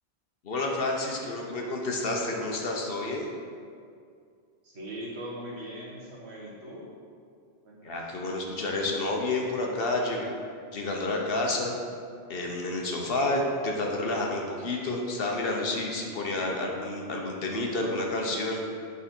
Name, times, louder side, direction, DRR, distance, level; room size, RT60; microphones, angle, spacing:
voice 1, 0.4-3.3 7.8-10.3 10.7-11.7 12.3-18.6, left 2 dB, 65° left, 0 dB, 1.1 m, -29 dB
voice 2, 4.6-6.9 7.6-8.0, equal, 85° right, -4 dB, 1.6 m, -40 dB
8.3 x 4.1 x 4.4 m, 2.2 s
omnidirectional pair, 1.1 m